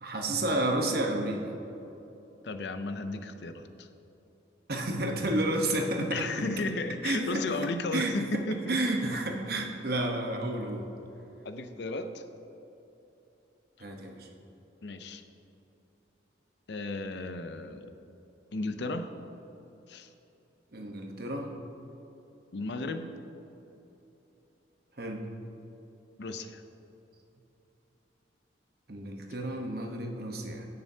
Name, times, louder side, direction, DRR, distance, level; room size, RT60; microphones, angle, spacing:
voice 1, 0.0-1.6 4.7-6.3 7.0-7.6 7.9-8.4 8.7-10.9 13.8-14.3 20.7-21.5 25.0-25.2 28.9-30.7, right 1 dB, 55° right, 2 dB, 1.0 m, -31 dB
voice 2, 2.4-3.9 6.0-8.8 11.4-12.2 14.8-15.2 16.7-17.9 18.5-19.1 19.9-20.1 22.5-23.1 26.2-26.6, left 2 dB, 65° left, 8 dB, 0.6 m, -34 dB
17.0 x 6.7 x 2.8 m, 3.0 s
head